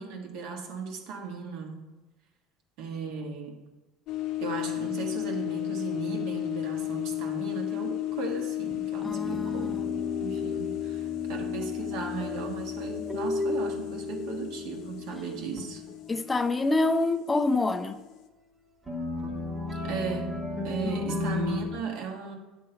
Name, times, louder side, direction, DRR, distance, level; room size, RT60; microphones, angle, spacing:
voice 1, 0.0-1.8 2.8-3.6 4.4-15.8 19.8-22.3, right 5 dB, 70° right, 1.5 m, -36 dB
sound 1, 4.1-18.3, left 15 dB, 60° left, 0.7 m, -34 dB
voice 2, 9.0-9.8 16.1-18.0 20.8-21.1, left 2 dB, 15° left, 0.3 m, -27 dB
sound 2, 9.1-15.0 15.6-16.2 17.2-17.3 18.9-21.7, left 3 dB, 10° right, 1.1 m, -34 dB
9.3 x 3.7 x 6.8 m
cardioid pair, 130°, 0 cm